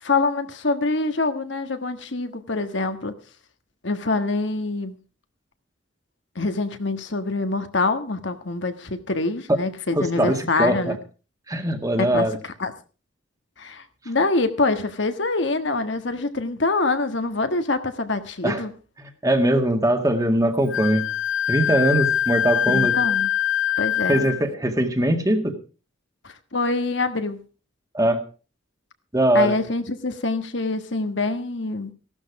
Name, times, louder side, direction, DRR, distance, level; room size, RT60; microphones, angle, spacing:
voice 1, 0.0-3.1 3.8-4.9 6.3-11.0 12.0-12.7 13.6-18.7 22.7-23.3 23.8-24.3 26.2-27.4 29.3-31.9, left 3 dB, 65° left, 8 dB, 1.5 m, -25 dB
voice 2, 10.0-11.0 11.5-12.4 18.4-18.6 19.0-21.1 21.5-22.9 24.1-25.5 27.9-28.2 29.1-29.5, right 1 dB, 15° right, 6 dB, 1.9 m, -21 dB
Wind instrument woodwind instrument, 20.7-24.4, left 10 dB, 80° left, 0.6 m, -23 dB
16.0 x 12.5 x 4.7 m, 0.35 s
head